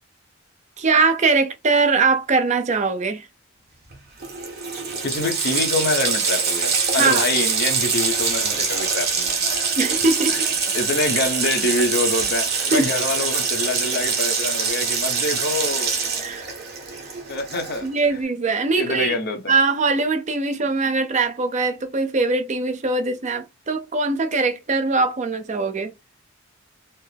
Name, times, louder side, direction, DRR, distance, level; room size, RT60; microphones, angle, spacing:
voice 1, 0.8-3.3 6.9-7.2 9.8-10.5 12.7-12.9 16.2-16.5 17.8-19.2 19.5-25.9, right 4 dB, 35° right, 0.5 m, -21 dB
Water tap faucet, 3.9-4.0 4.2-18.0, right 5 dB, 50° right, 1.1 m, -24 dB
voice 2, 5.0-9.8 10.3-10.4 10.7-16.0 17.3-17.9 18.8-19.5, left 2 dB, 50° left, 0.9 m, -26 dB
4.3 x 2.1 x 3.4 m
head